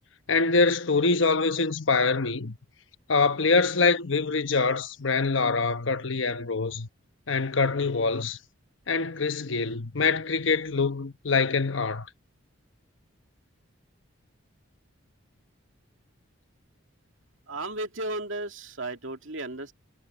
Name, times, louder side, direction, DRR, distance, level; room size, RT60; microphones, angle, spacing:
voice 1, 0.3-2.6 3.1-6.9 7.3-8.4 8.9-12.1, left 4 dB, 65° left, 1.0 m, -24 dB
voice 2, 17.5-19.7, right 2 dB, 70° right, 2.4 m, -34 dB
head